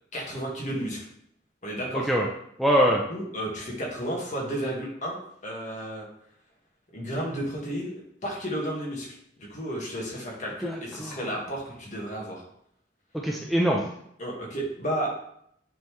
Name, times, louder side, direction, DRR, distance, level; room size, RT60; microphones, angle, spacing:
voice 1, 0.1-1.1 1.6-2.1 3.1-6.1 6.9-9.1 9.4-12.4 14.2-15.1, right 1 dB, 40° left, -3 dB, 1.7 m, -32 dB
voice 2, 1.9-2.3 2.6-3.0 10.6-11.2 13.1-13.8, equal, ahead, -2 dB, 0.5 m, -24 dB
9.1 x 3.7 x 3.1 m, 0.71 s
head